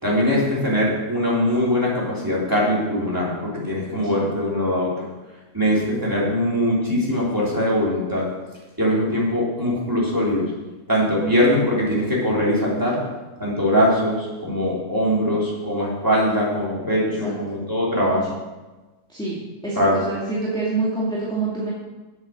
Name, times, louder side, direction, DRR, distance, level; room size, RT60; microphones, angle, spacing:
voice 1, 0.0-4.9 5.5-8.2 8.8-10.5 10.9-13.0 13.4-18.2 19.8-20.0, equal, 15° right, -6 dB, 3.5 m, -21 dB
voice 2, 19.1-21.7, right 3 dB, 5° left, -7 dB, 2.3 m, -26 dB
9.5 x 8.1 x 6.5 m, 1.2 s
omnidirectional pair, 1.5 m